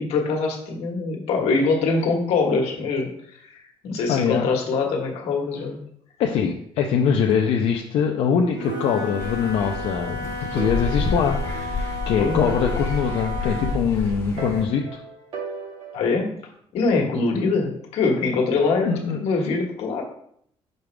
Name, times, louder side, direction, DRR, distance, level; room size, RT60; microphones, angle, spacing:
voice 1, 0.0-5.8 12.2-12.5 15.9-16.3 16.7-20.0, left 4 dB, 85° left, 1 dB, 1.4 m, -23 dB
voice 2, 4.1-4.5 6.2-15.0 18.9-19.2, left 7 dB, 70° left, 1 dB, 0.6 m, -23 dB
Wind instrument woodwind instrument, 8.5-13.9, left 3 dB, 35° right, 1.3 m, -33 dB
sound 1, 8.7-9.8 10.1-10.2 10.6-12.1 12.5-13.9 14.4-16.2, right 3 dB, 65° right, 2.2 m, -36 dB
sound 2, 9.2-14.6, left 2 dB, 25° left, 1.2 m, -30 dB
6.0 x 5.3 x 3.3 m, 0.67 s
cardioid pair, 175°, 11 cm